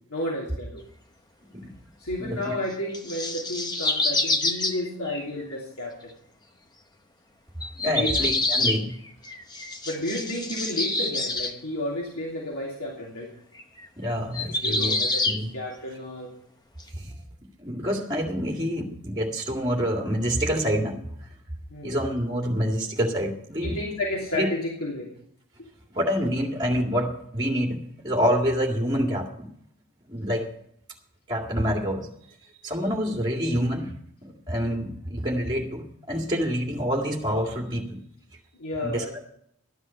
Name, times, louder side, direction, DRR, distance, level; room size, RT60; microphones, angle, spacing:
voice 1, 0.1-0.8 2.0-6.1 7.9-8.1 9.8-13.3 14.6-16.3 21.7-22.0 23.6-25.1 38.6-39.2, left 1 dB, 85° left, -3 dB, 3.0 m, -32 dB
voice 2, 2.2-2.6 7.8-9.0 14.0-15.5 16.9-17.1 17.6-21.1 21.8-23.8 24.3-24.5 25.9-29.5 30.1-30.5 31.3-32.1 32.6-34.0 34.2-38.0 38.8-39.1, equal, 20° right, -1 dB, 2.2 m, -27 dB
sound 1, 2.9-5.5 7.6-11.5 13.6-13.9 14.3-15.4 16.8-16.9, left 2 dB, 20° left, 1.0 m, -26 dB
14.0 x 10.0 x 5.7 m, 0.69 s
head